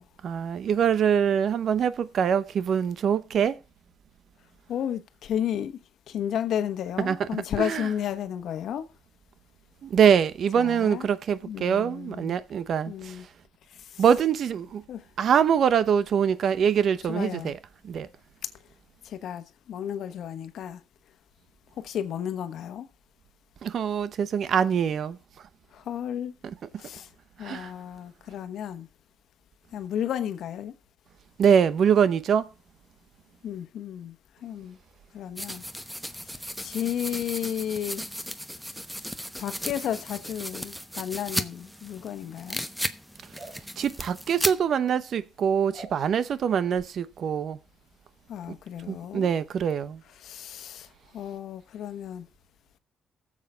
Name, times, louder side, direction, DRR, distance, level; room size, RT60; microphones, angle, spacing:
voice 1, 0.2-3.6 7.0-7.9 9.8-13.1 14.0-14.8 15.2-17.6 17.8-18.1 23.6-25.2 26.4-26.5 27.4-27.7 31.4-32.5 43.8-47.6 48.9-50.0, right 8 dB, 60° right, 0.8 m, -24 dB
voice 2, 4.7-5.8 6.1-8.9 10.5-11.1 11.4-12.4 12.8-13.3 13.7-14.0 14.9-15.0 17.1-17.5 19.0-20.8 21.8-22.9 25.7-26.4 26.8-27.1 27.4-28.9 29.7-30.7 33.4-34.2 34.4-34.8 35.1-35.6 36.2-36.3 36.6-38.0 39.4-42.6 48.3-49.3 50.2-52.3, left 9 dB, 75° left, 1.1 m, -33 dB
sound 1, 35.4-44.5, equal, ahead, 0.9 m, -35 dB
sound 2, 43.3-43.6 45.7-46.0 46.7-46.9, right 2 dB, 40° right, 4.6 m, -44 dB
22.0 x 7.5 x 2.4 m
cardioid pair, 90°, 0 cm